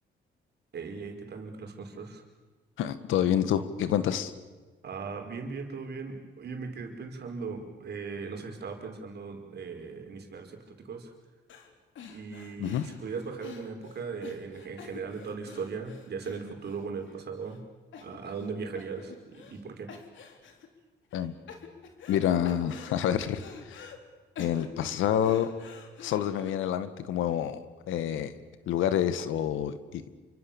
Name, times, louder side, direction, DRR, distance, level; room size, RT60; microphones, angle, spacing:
voice 1, 0.7-2.2 4.8-11.1 12.1-17.6 18.0-19.9, right 5 dB, 55° right, 3 dB, 5.2 m, -38 dB
voice 2, 2.8-4.3 12.6-12.8 21.1-21.3 22.1-23.9 24.4-25.5 26.0-28.3 28.7-30.1, left 10 dB, 90° left, 13 dB, 1.7 m, -28 dB
sound 1, 11.5-11.7 12.0-17.1 17.5-17.6 17.9-18.5 18.8-19.6 19.9-20.7 21.1-22.2 22.4-24.0 24.4-26.5, left 6 dB, 75° left, 3.7 m, -47 dB
28.5 x 24.5 x 7.2 m, 1.3 s
cardioid pair, 90°, 20 cm